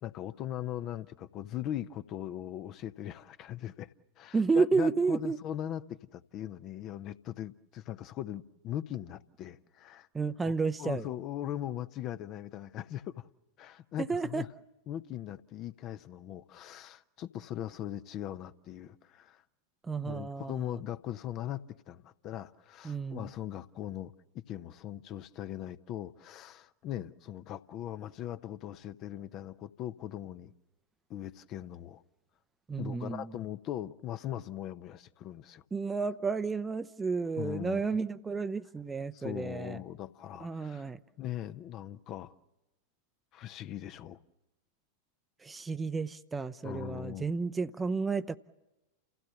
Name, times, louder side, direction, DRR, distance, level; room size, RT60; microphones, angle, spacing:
voice 1, 0.0-3.9 4.2-10.1 10.4-10.5 10.8-13.3 13.6-14.5 14.9-19.4 20.0-24.1 24.5-30.5 31.1-32.0 32.8-35.6 37.4-37.8 39.1-40.9 41.2-42.3 43.3-44.2 46.6-47.3, left 11 dB, 35° left, 0.8 m, -40 dB
voice 2, 4.3-5.4 10.1-11.0 14.0-14.5 19.9-20.8 22.8-23.3 32.7-33.3 35.7-39.8 40.4-41.0 45.4-48.4, right 4 dB, 15° right, 0.7 m, -31 dB
29.5 x 16.0 x 6.9 m
figure-of-eight pair, 90°, 0 cm